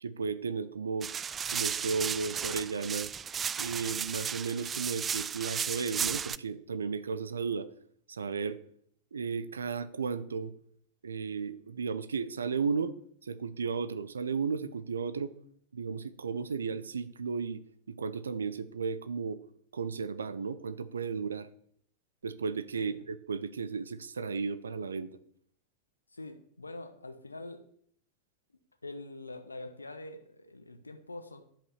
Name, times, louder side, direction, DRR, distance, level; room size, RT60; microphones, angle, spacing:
voice 1, 0.0-1.1 1.5-3.1 3.6-7.7 8.1-8.6 9.1-10.5 11.0-12.9 13.2-15.3 15.7-17.6 17.9-19.4 19.7-21.5 22.2-25.1, right 5 dB, 70° right, 13 dB, 0.6 m, -34 dB
sound 1, 1.0-6.4, right 7 dB, 20° right, 0.3 m, -34 dB
voice 2, 26.1-27.6 28.8-31.4, left 2 dB, 80° left, 9 dB, 0.9 m, -44 dB
10.5 x 5.5 x 7.0 m, 0.65 s
figure-of-eight pair, 90°, 0 cm